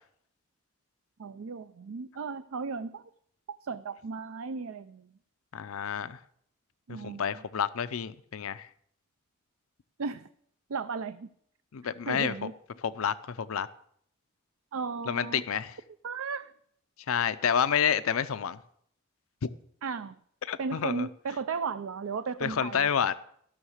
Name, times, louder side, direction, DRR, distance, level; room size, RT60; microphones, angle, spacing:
voice 1, 1.2-3.1 3.6-5.1 6.9-7.3 10.0-10.3 10.7-11.3 12.1-12.5 14.7-15.4 16.0-16.5 19.8-20.2 20.6-22.9, right 5 dB, 75° right, 0.5 m, -35 dB
voice 2, 5.5-6.2 6.9-8.7 11.7-12.3 12.8-13.7 15.1-15.8 17.1-18.6 19.4-19.5 20.5-21.1 22.4-23.1, left 7 dB, 80° left, 0.5 m, -29 dB
14.5 x 6.5 x 6.4 m
head